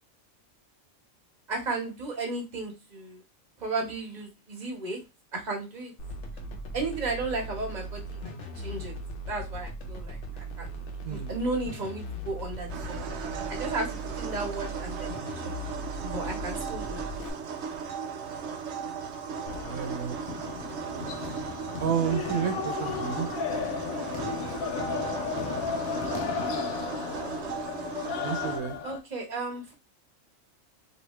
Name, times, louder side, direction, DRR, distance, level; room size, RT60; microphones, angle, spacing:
voice 1, 1.5-3.2 3.6-5.0 5.3-5.9 6.7-8.9 9.3-13.0 13.5-15.6 16.0-17.1 28.8-29.7, right 3 dB, 35° right, 0 dB, 1.3 m, -34 dB
sound 1, 6.0-17.3, right 1 dB, 60° left, 1.0 m, -38 dB
sound 2, 12.7-28.6, right 6 dB, 60° right, 0.8 m, -36 dB
sound 3, 19.5-29.0, left 6 dB, 85° left, 1.1 m, -34 dB
voice 2, 19.6-20.2 21.8-23.3 28.2-28.8, right 8 dB, 90° right, 6 dB, 1.1 m, -30 dB
3.1 x 2.7 x 3.1 m, 0.25 s
omnidirectional pair, 1.4 m